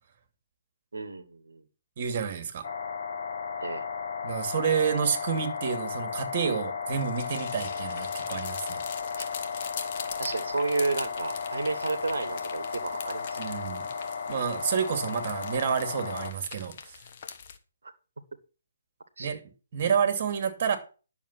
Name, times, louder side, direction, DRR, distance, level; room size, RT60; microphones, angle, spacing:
voice 1, 0.9-1.6 3.6-3.9 10.2-13.4 19.2-19.3, right 3 dB, 70° right, 1.6 m, -31 dB
voice 2, 2.0-2.6 4.2-8.8 13.4-13.9 14.3-17.0 19.2-19.4 19.7-20.8, right 7 dB, 45° right, 2.5 m, -29 dB
sound 1, 2.6-16.3, left 6 dB, 65° left, 1.6 m, -35 dB
sound 2, 6.9-17.6, left 7 dB, 45° left, 1.4 m, -43 dB
11.0 x 7.2 x 6.0 m
figure-of-eight pair, 135°, 0 cm